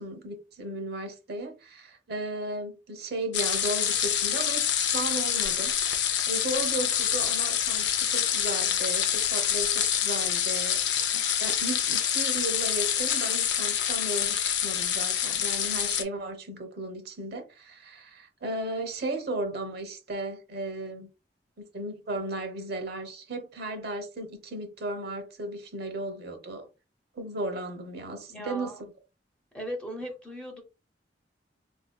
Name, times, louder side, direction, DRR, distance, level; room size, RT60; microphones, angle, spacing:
voice 1, 0.0-21.1 21.6-26.7 27.1-28.9, right 2 dB, 60° right, 0.9 m, -35 dB
sound 1, 3.3-16.0, left 9 dB, 75° left, 0.5 m, -26 dB
voice 2, 28.3-28.8 29.5-30.6, equal, 5° left, 0.7 m, -37 dB
4.2 x 2.7 x 2.2 m
head